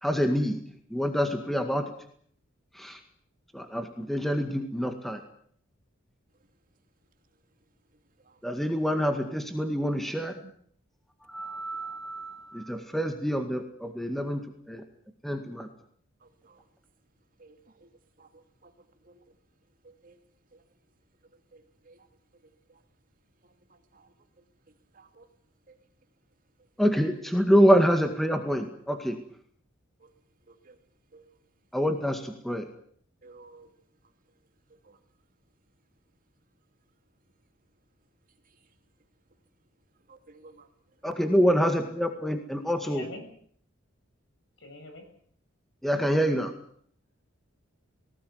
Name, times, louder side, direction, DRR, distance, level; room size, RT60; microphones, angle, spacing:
voice 1, 0.0-0.6 0.9-1.9 2.7-3.0 3.5-5.2 8.4-10.4 11.3-14.8 15.2-15.7 26.8-29.2 31.7-32.7 41.0-43.0 45.8-46.5, equal, ahead, 6 dB, 2.0 m, -26 dB
voice 2, 16.2-16.7 17.4-17.9 18.2-18.7 19.0-19.3 19.8-20.2 20.5-20.6 21.5-22.1 22.4-22.8 23.9-24.1 24.9-25.3 25.7-25.8 30.0-30.1 30.5-30.8 31.1-31.3 33.2-33.7 34.8-35.0 40.1-40.7 41.0-41.4, right 3 dB, 45° right, 7 dB, 2.6 m, -55 dB
voice 3, 42.7-43.2 44.6-45.0, left 3 dB, 65° left, 6 dB, 7.3 m, -44 dB
19.5 x 18.5 x 9.6 m, 0.62 s
head